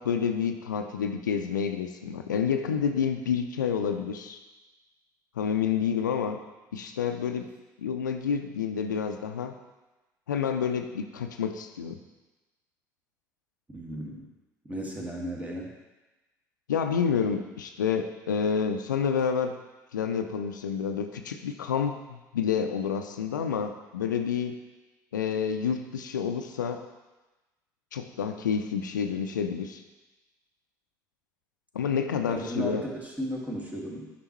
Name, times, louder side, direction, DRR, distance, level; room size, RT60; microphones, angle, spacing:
voice 1, 0.0-4.4 5.4-6.4 6.7-7.5 7.8-9.6 10.3-12.0 16.7-19.6 19.9-24.5 25.1-26.9 27.9-29.8 31.7-32.8, left 7 dB, 85° left, 6 dB, 0.5 m, -29 dB
voice 2, 13.7-14.3 14.7-15.7 32.3-34.1, equal, 15° right, -2 dB, 2.0 m, -35 dB
9.7 x 6.0 x 3.1 m, 1.1 s
figure-of-eight pair, 60°, 10 cm